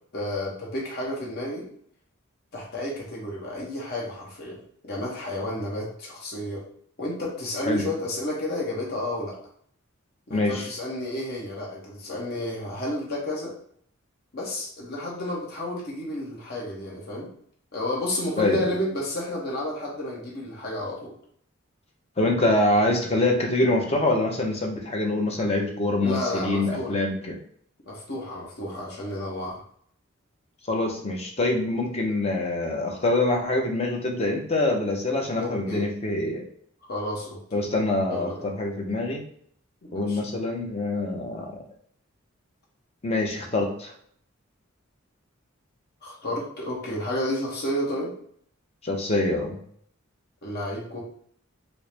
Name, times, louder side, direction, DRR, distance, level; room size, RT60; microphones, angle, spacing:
voice 1, 0.1-1.7 2.5-6.6 7.0-9.4 10.3-13.6 14.3-17.3 17.7-21.1 26.0-27.0 27.9-29.6 35.3-35.9 36.8-37.6 38.1-38.5 39.8-40.2 46.0-48.1 50.4-51.0, left 1 dB, 50° left, -3 dB, 0.9 m, -31 dB
voice 2, 10.3-10.6 18.4-18.6 22.2-27.4 30.7-36.5 37.5-39.2 39.9-41.5 43.0-43.9 48.8-49.6, left 2 dB, 30° left, 1 dB, 0.7 m, -25 dB
4.3 x 2.0 x 3.3 m, 0.62 s
head